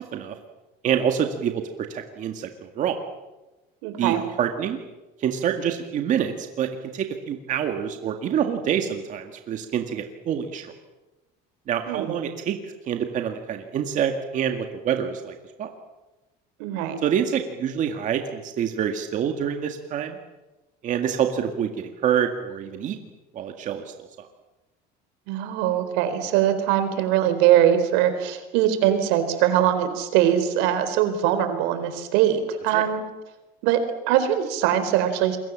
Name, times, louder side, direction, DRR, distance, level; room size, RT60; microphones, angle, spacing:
voice 1, 0.8-3.0 4.0-4.8 5.2-10.7 11.7-12.6 12.9-15.7 17.0-20.2 20.8-23.0 23.3-24.3 32.7-32.8, right 8 dB, 40° right, 5 dB, 1.9 m, -26 dB
voice 2, 3.8-4.2 11.9-12.2 16.6-17.0 25.3-33.0 33.6-33.8 34.1-35.4, right 11 dB, 85° right, 9 dB, 4.2 m, -22 dB
28.0 x 22.5 x 7.5 m, 1.1 s
cardioid pair, 155°, 19 cm